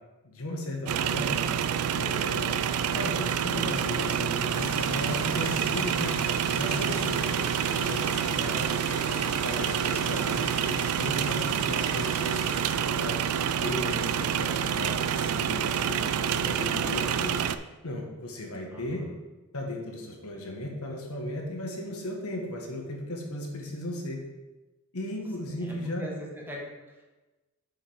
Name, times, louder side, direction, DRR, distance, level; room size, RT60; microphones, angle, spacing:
voice 1, 0.2-1.5 2.0-2.6 2.9-6.2 6.6-12.4 12.9-13.2 13.6-17.4 17.8-19.0 19.5-24.2 24.9-26.1, left 1 dB, 85° left, 1 dB, 1.4 m, -36 dB
sound 1, 0.9-17.6, right 8 dB, 85° right, 0.4 m, -28 dB
sound 2, 4.5-12.8, left 8 dB, 55° left, 0.5 m, -44 dB
voice 2, 18.7-19.1 25.6-27.1, equal, 10° right, -2 dB, 1.4 m, -42 dB
6.6 x 5.1 x 4.9 m, 1.1 s
head